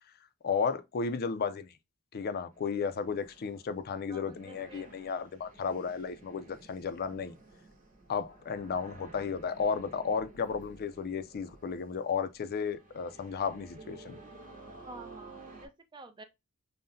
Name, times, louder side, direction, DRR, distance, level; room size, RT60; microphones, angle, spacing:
voice 1, 0.4-1.7 2.1-7.4 8.1-14.2, left 5 dB, 45° left, 0.4 m, -33 dB
sound 1, 2.5-15.7, right 3 dB, 40° right, 1.1 m, -53 dB
voice 2, 4.1-4.9 14.8-16.2, right 2 dB, 20° right, 0.5 m, -50 dB
5.4 x 2.1 x 2.6 m
head